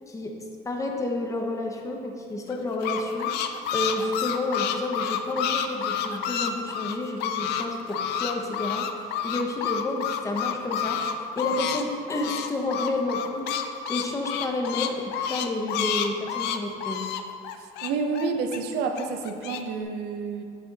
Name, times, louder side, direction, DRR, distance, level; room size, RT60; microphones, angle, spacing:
voice 1, 0.6-3.3 3.7-8.9 9.2-11.0 11.4-13.6 13.9-17.0, left 2 dB, 20° left, 1 dB, 0.8 m, -30 dB
sound 1, 2.5-7.6 7.9-11.8 12.1-18.6 19.0-19.6, left 8 dB, 80° left, 0.4 m, -29 dB
voice 2, 17.8-20.4, right 4 dB, 85° right, 5 dB, 0.6 m, -29 dB
7.2 x 4.3 x 3.8 m, 2.5 s
cardioid pair, 110°, 17 cm